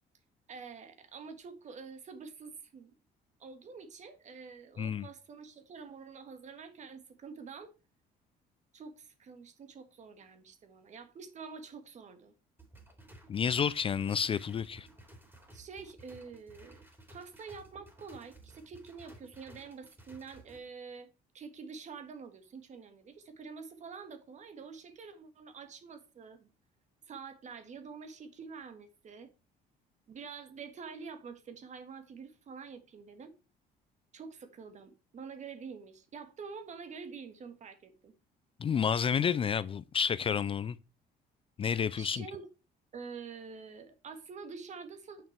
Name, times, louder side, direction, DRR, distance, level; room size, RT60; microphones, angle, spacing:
voice 1, 0.5-2.9 3.4-7.7 8.7-12.3 15.5-16.8 17.1-21.1 21.3-26.5 27.1-29.3 30.1-33.3 34.1-38.1 41.9-42.5 42.9-45.3, right 5 dB, 45° right, 1.6 m, -47 dB
sound 1, 12.6-20.6, right 1 dB, 15° right, 3.2 m, -55 dB
voice 2, 13.3-14.9 38.6-40.8 41.6-42.2, left 7 dB, 35° left, 0.4 m, -30 dB
8.8 x 6.0 x 4.5 m
cardioid pair, 110°, 17 cm